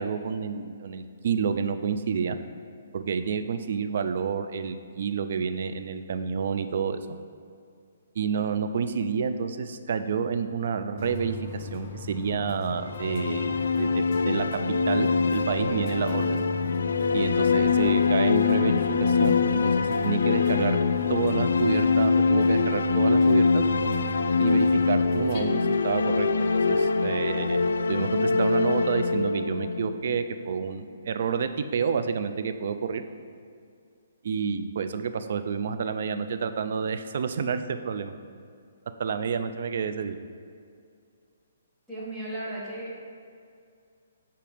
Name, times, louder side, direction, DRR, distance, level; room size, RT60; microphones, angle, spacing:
voice 1, 0.0-2.4 2.9-7.2 8.2-14.6 14.9-16.5 17.1-20.8 21.1-23.6 24.4-27.6 27.9-33.0 34.2-38.1 39.0-40.2, right 6 dB, 55° right, 9 dB, 0.4 m, -29 dB
sound 1, 11.0-25.4, left 4 dB, 35° left, 0.6 m, -39 dB
sound 2, 12.8-30.7, left 4 dB, 85° left, 0.3 m, -24 dB
voice 2, 41.9-43.0, right 1 dB, 10° right, -7 dB, 1.4 m, -35 dB
8.5 x 2.9 x 5.0 m, 2.3 s
hypercardioid pair, 155°, 0 cm